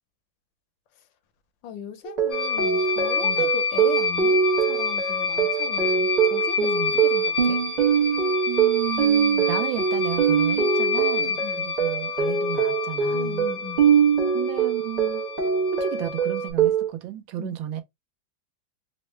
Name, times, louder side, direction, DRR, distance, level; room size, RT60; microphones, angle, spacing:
voice 1, 1.6-6.7 7.0-7.6 11.2-11.7 13.1-13.9 17.4-17.6, left 8 dB, 75° left, 1.3 m, -37 dB
sound 1, 2.1-16.9, right 7 dB, 55° right, 0.4 m, -23 dB
sound 2, 2.3-16.5, left 5 dB, 60° left, 0.8 m, -29 dB
voice 2, 3.2-3.5 6.6-7.0 8.5-13.5 14.3-15.2 15.7-17.8, right 12 dB, 80° right, 1.4 m, -33 dB
3.6 x 2.1 x 3.1 m
omnidirectional pair, 2.2 m